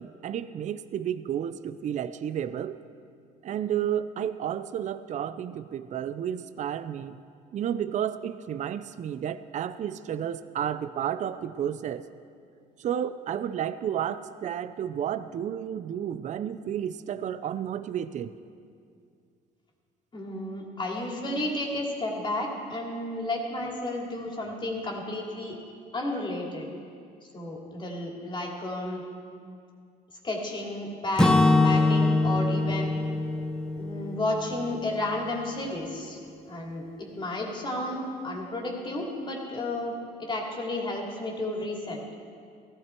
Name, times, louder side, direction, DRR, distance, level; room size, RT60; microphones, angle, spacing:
voice 1, 0.0-2.8 3.4-7.2 7.5-12.0 12.8-18.3, right 9 dB, 45° right, 13 dB, 0.5 m, -31 dB
voice 2, 20.1-25.6 25.9-26.7 27.3-29.0 30.2-32.9 33.7-36.2 36.5-39.9 40.2-42.0, left 1 dB, 30° left, -1 dB, 2.8 m, -32 dB
Acoustic guitar / Strum, 31.2-35.1, left 2 dB, 5° left, 0.8 m, -24 dB
15.5 x 15.0 x 4.5 m, 2.3 s
cardioid pair, 110°, 17 cm